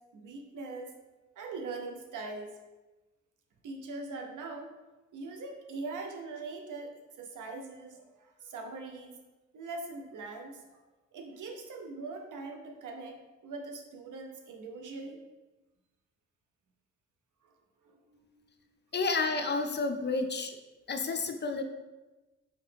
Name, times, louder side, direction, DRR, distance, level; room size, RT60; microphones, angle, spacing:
voice 1, 0.1-0.9 1.4-2.6 3.6-4.7 5.1-9.2 9.5-10.8 11.1-15.2 17.8-18.4, right 3 dB, 75° right, 3 dB, 0.7 m, -42 dB
voice 2, 18.9-20.6 20.9-21.6, left 3 dB, 35° left, 6 dB, 0.5 m, -30 dB
4.6 x 2.8 x 3.3 m, 1.1 s
cardioid pair, 60°, 31 cm